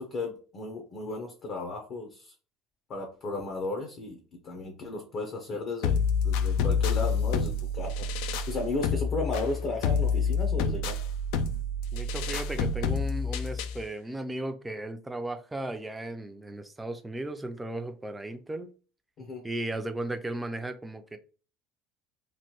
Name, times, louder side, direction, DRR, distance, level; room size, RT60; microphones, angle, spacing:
voice 1, 0.0-2.3 2.9-8.1 8.5-11.0 19.2-19.4, left 2 dB, 45° left, 0.7 m, -34 dB
sound 1, 5.8-13.8, left 5 dB, 75° left, 0.3 m, -28 dB
voice 2, 11.9-18.7 19.4-21.2, right 1 dB, 10° right, 0.4 m, -36 dB
3.1 x 2.1 x 2.9 m
supercardioid pair, 115°, 0 cm